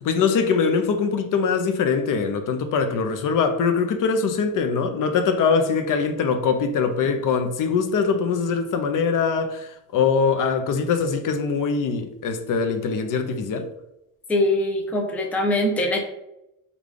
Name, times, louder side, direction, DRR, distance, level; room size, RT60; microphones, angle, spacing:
voice 1, 0.0-13.7, left 5 dB, 65° left, 0.6 m, -22 dB
voice 2, 14.3-16.0, left 1 dB, 5° left, 0.4 m, -22 dB
4.9 x 2.4 x 3.6 m
cardioid pair, 175°, 35 cm